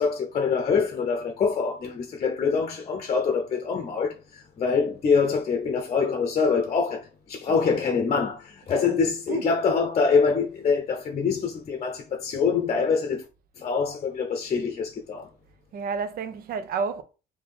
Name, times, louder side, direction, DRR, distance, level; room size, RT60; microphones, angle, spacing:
voice 1, 0.0-13.2 13.6-15.3, left 5 dB, 40° left, 0.7 m, -25 dB
voice 2, 15.7-17.0, right 5 dB, 60° right, 0.7 m, -31 dB
3.6 x 2.8 x 4.3 m
cardioid pair, 110°, 17 cm